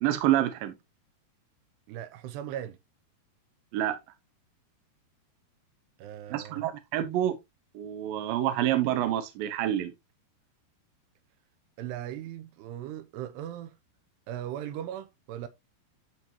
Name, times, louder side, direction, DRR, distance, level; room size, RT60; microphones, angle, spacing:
voice 1, 0.0-0.7 3.7-4.0 6.3-7.4 7.7-9.9, right 12 dB, 70° right, 2.5 m, -27 dB
voice 2, 1.9-2.8 6.0-6.7 11.8-13.8 14.3-15.5, right 11 dB, 90° right, 2.9 m, -38 dB
11.0 x 4.5 x 3.0 m
omnidirectional pair, 4.7 m